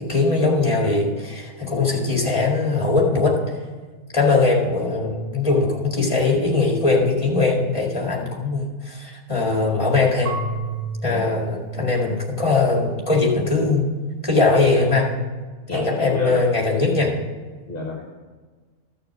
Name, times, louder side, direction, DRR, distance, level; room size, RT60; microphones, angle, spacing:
voice 1, 0.0-3.4 4.1-10.3 11.0-13.8 14.2-15.1 15.7-17.1, left 3 dB, 20° left, -1 dB, 2.1 m, -20 dB
Marimba xylophone / Wood, 10.3-13.1, right 2 dB, 50° right, 2.4 m, -32 dB
voice 2, 15.7-16.4 17.7-18.1, left 3 dB, 40° left, 1 dB, 1.4 m, -29 dB
13.5 x 6.7 x 6.2 m, 1.4 s
omnidirectional pair, 1.6 m